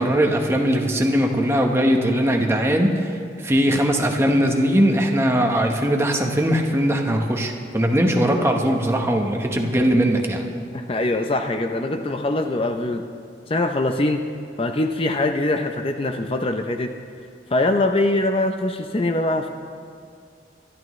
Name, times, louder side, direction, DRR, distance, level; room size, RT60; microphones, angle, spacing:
voice 1, 0.0-10.5, equal, 15° right, 2 dB, 1.1 m, -20 dB
voice 2, 10.7-13.0 13.5-14.2 14.6-16.9 17.5-19.5, left 2 dB, 30° left, 5 dB, 0.6 m, -22 dB
23.5 x 11.5 x 3.2 m, 2.2 s
head